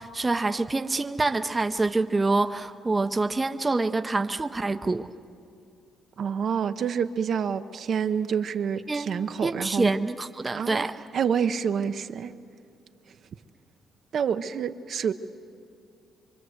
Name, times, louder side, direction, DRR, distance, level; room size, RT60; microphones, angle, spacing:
voice 1, 0.0-5.1 8.9-9.1 9.4-10.9, right 3 dB, 20° right, 8 dB, 0.7 m, -26 dB
voice 2, 6.2-9.9 10.5-10.9 11.1-12.3 14.1-15.1, right 7 dB, 60° right, 8 dB, 0.8 m, -27 dB
25.0 x 24.5 x 7.9 m, 2.4 s
cardioid pair, 90°, 0 cm